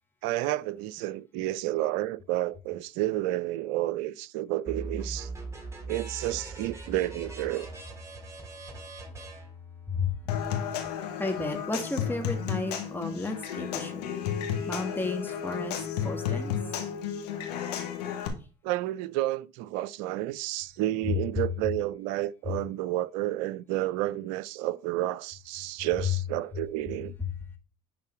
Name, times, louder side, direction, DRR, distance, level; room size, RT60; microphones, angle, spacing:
voice 1, 0.2-5.3 5.9-7.7 18.6-27.1, right 15 dB, 70° right, 0.5 m, -30 dB
sound 1, 4.7-10.3, right 2 dB, 15° right, 3.5 m, -40 dB
Human voice / Acoustic guitar / Percussion, 10.3-18.3, left 8 dB, 80° left, 1.5 m, -32 dB
voice 2, 11.2-14.0 14.7-15.8 16.0-16.6, left 3 dB, 10° left, 1.9 m, -33 dB
10.5 x 3.8 x 4.5 m
hypercardioid pair, 60°, 20 cm